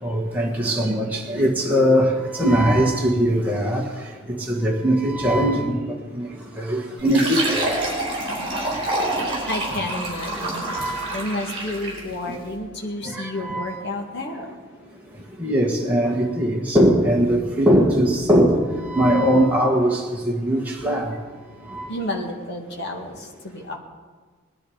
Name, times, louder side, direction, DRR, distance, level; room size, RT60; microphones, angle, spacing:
voice 1, 0.0-3.9 4.3-5.8 6.1-6.3 6.6-7.7 9.2-9.3 10.7-11.1 13.1-13.8 15.4-21.1 21.7-21.9, equal, 5° right, -3 dB, 1.6 m, -20 dB
Fill (with liquid), 7.0-12.1, right 1 dB, 25° right, 4.0 m, -27 dB
voice 2, 9.4-10.6 11.1-14.6 21.9-23.8, left 1 dB, 50° left, 1 dB, 2.0 m, -30 dB
19.5 x 11.0 x 5.1 m, 1.4 s
head